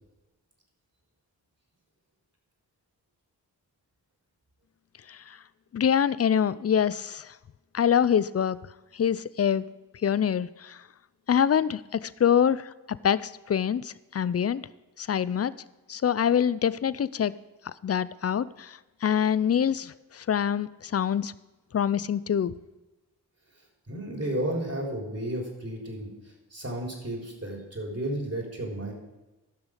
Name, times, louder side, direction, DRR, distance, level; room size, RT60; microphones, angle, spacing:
voice 1, 5.7-7.3 7.7-8.6 8.9-9.6 10.0-10.8 11.3-12.7 13.0-14.6 15.0-15.5 15.9-17.3 17.8-21.3 21.7-22.5, left 8 dB, 35° left, 18 dB, 0.5 m, -25 dB
voice 2, 23.9-26.1 26.5-28.9, right 1 dB, 35° right, 0 dB, 3.7 m, -32 dB
14.5 x 6.1 x 5.0 m, 1.1 s
cardioid pair, 45°, 41 cm